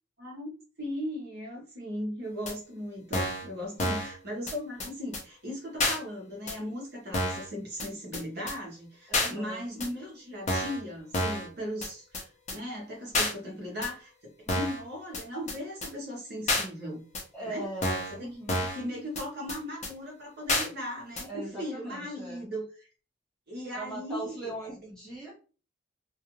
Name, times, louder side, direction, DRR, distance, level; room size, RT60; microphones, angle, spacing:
voice 1, 0.2-0.5 0.8-17.0 17.4-17.7 18.2-18.3 18.7-22.9 23.5-24.7, equal, 50° right, -2 dB, 0.9 m, -38 dB
sound 1, 2.5-2.6 3.1-3.5 3.8-4.1 4.5-4.6 4.8-4.9 5.1-5.2 5.8-6.0 6.5-6.6 7.1-7.5 7.8-7.9 8.1-8.2 8.5-8.6 9.1-9.3 9.8-9.9 10.5-10.8 11.1-11.5 11.8-11.9 12.1-12.2 12.5-12.6 13.1-13.3 13.8-13.9 14.5-14.8 15.1-15.2 15.5-15.6 15.8-15.9 16.5-16.6 17.1-17.2 17.8-18.1 18.5-18.8 19.2-19.3 19.5-19.6 19.8-19.9 20.5-20.7 21.2-21.3, left 2 dB, 35° left, 0.6 m, -29 dB
voice 2, 3.7-4.0 9.1-9.6 14.4-14.6 17.3-18.7 21.3-22.5 23.7-25.3, right 1 dB, 5° left, -6 dB, 0.9 m, -40 dB
2.4 x 2.2 x 2.9 m, 0.37 s
head